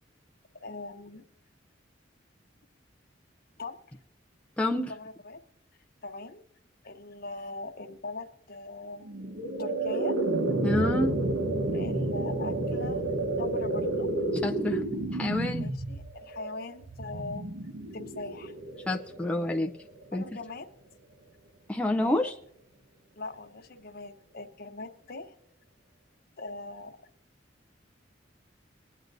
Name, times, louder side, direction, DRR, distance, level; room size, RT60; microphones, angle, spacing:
voice 1, 0.6-1.2 3.6-3.8 4.9-5.4 6.0-6.4 6.8-9.1 9.6-10.2 11.7-13.0 13.4-14.1 15.6-17.5 17.9-18.6 20.1-20.7 22.0-22.3 23.2-25.3 26.4-27.0, left 3 dB, 50° left, 6 dB, 0.9 m, -41 dB
voice 2, 4.6-4.9 10.6-11.2 14.3-14.8 15.1-15.7 18.9-19.7 20.1-20.2 21.7-22.4, left 1 dB, 5° left, 1 dB, 0.5 m, -28 dB
sound 1, 9.0-20.2, right 2 dB, 80° right, 1.1 m, -31 dB
23.0 x 9.5 x 2.6 m, 0.77 s
head